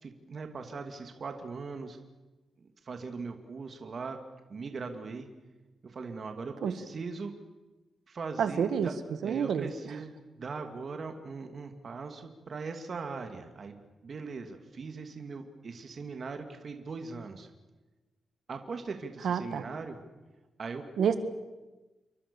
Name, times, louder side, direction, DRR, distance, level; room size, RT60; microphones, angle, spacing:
voice 1, 0.0-2.0 2.6-4.2 4.5-5.3 5.8-7.3 8.1-8.9 9.2-13.8 14.0-17.5 18.5-20.0 20.6-20.8, right 4 dB, 45° right, 5 dB, 2.5 m, -40 dB
voice 2, 8.4-8.9 9.2-9.7 19.2-19.6 21.0-21.2, right 7 dB, 75° right, 10 dB, 1.6 m, -28 dB
29.0 x 23.5 x 7.1 m, 1.1 s
wide cardioid pair, 125°, 0 cm